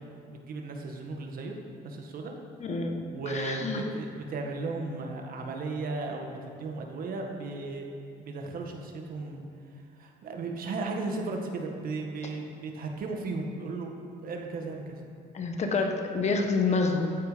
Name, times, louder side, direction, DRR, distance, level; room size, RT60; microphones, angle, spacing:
voice 1, 0.3-1.6 1.8-2.3 3.1-7.9 8.2-9.4 10.0-13.9 14.2-15.0, right 3 dB, 60° right, 2 dB, 1.9 m, -35 dB
voice 2, 2.6-3.8 15.3-17.2, left 4 dB, 40° left, 3 dB, 1.6 m, -28 dB
15.5 x 9.3 x 5.3 m, 2.3 s
cardioid pair, 110°, 17 cm